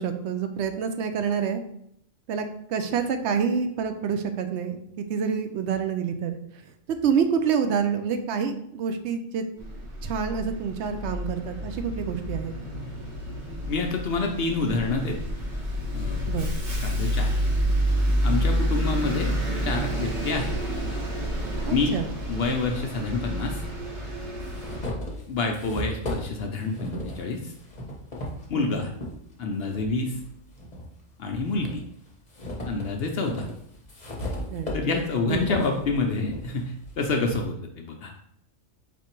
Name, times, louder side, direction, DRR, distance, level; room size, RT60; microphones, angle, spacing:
voice 1, 0.0-1.6 2.3-2.4 2.7-6.4 7.0-9.4 10.0-12.5 16.3-16.5 21.7-22.1 28.5-28.8 34.5-34.9 35.3-35.5, right 6 dB, 65° right, 7 dB, 0.8 m, -27 dB
Bus, 9.6-24.9, equal, 40° right, 1.1 m, -29 dB
voice 2, 13.7-15.2 15.9-16.2 16.8-17.3 18.2-19.3 19.6-20.5 21.7-22.0 22.3-23.6 25.3-27.5 28.5-28.9 29.4-30.2 31.2-31.8 32.7-33.5 34.7-38.1, left 3 dB, 60° left, 3 dB, 0.7 m, -27 dB
sound 1, 22.3-22.4 23.4-23.5 24.0-29.1 29.7-30.9 31.3-37.4, equal, 35° left, 1.1 m, -36 dB
4.3 x 2.8 x 4.4 m, 0.72 s
omnidirectional pair, 1.4 m